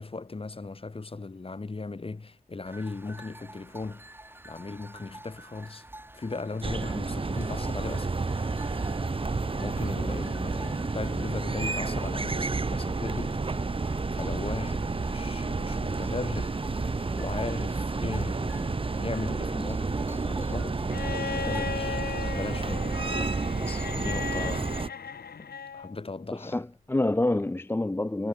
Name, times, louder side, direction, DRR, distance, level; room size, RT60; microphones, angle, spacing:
voice 1, 0.0-4.0 4.4-5.8 6.1-8.1 9.6-13.8 14.1-20.8 21.4-22.1 22.3-22.9 23.6-24.8 25.4-25.5 25.7-26.7, left 3 dB, 35° left, 2.4 m, -37 dB
sound 1, 2.6-22.3, right 1 dB, 15° right, 2.0 m, -49 dB
sound 2, 6.6-24.9, right 3 dB, 35° right, 1.4 m, -30 dB
Bowed string instrument, 20.9-25.9 27.4-27.5, left 6 dB, 85° left, 1.3 m, -36 dB
voice 2, 26.3-28.3, left 2 dB, 15° left, 0.5 m, -27 dB
wide cardioid pair, 115°, 16 cm